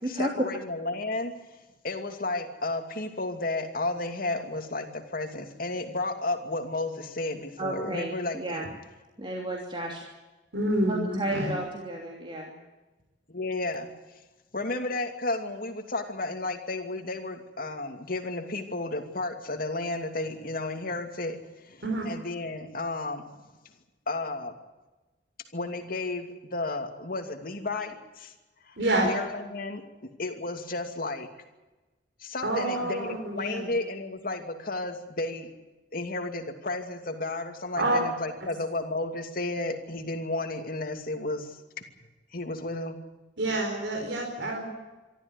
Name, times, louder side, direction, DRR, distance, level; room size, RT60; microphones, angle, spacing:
voice 1, 0.0-8.7 13.3-14.2 14.5-23.3 24.1-24.5 25.5-28.3 28.6-28.8 29.0-31.3 32.2-35.5 35.9-41.8 42.3-43.0, left 2 dB, 55° left, 5 dB, 2.6 m, -33 dB
voice 2, 7.6-8.6 9.2-10.0 10.9-12.5, right 1 dB, 30° right, -1 dB, 3.0 m, -32 dB
voice 3, 10.5-11.5 21.8-22.0 28.8-29.1 32.4-33.7 37.8-38.0 43.4-44.7, right 1 dB, 75° right, 1 dB, 4.6 m, -27 dB
25.0 x 13.5 x 9.9 m, 1.1 s
head